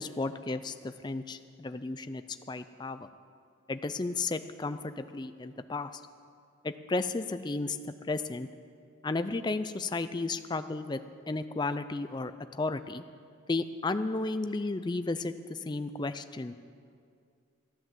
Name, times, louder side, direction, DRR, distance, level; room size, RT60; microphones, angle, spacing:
voice 1, 0.0-2.2 2.5-3.1 3.7-5.9 6.6-7.8 8.1-8.5 9.0-11.0 11.3-13.0 13.5-16.5, left 3 dB, 20° left, 11 dB, 0.4 m, -33 dB
14.0 x 9.6 x 7.5 m, 2.3 s
head